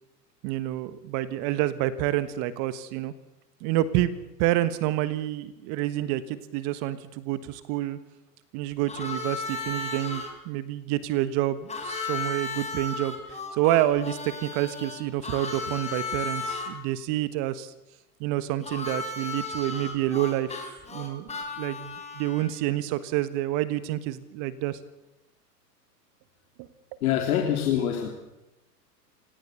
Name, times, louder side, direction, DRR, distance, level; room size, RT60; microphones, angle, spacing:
voice 1, 0.4-3.1 3.6-4.1 4.4-8.0 8.5-17.7 18.2-20.7 20.9-21.3 21.6-24.8, right 14 dB, 40° right, 14 dB, 1.4 m, -28 dB
Harmonica, 8.9-10.3 11.7-16.7 18.6-22.6, left 3 dB, 15° left, 4.4 m, -35 dB
voice 2, 27.0-28.1, left 10 dB, 60° left, 2 dB, 3.5 m, -25 dB
28.5 x 18.0 x 7.0 m, 0.94 s
hypercardioid pair, 115°, 49 cm